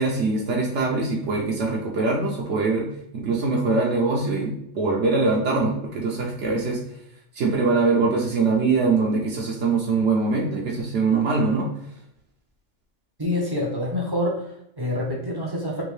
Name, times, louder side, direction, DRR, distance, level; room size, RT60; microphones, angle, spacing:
voice 1, 0.0-2.9 3.1-6.8 7.4-11.7, right 3 dB, 75° right, -2 dB, 1.0 m, -23 dB
voice 2, 13.2-15.8, left 1 dB, 30° right, -2 dB, 0.5 m, -27 dB
3.6 x 2.6 x 3.1 m, 0.78 s
omnidirectional pair, 1.3 m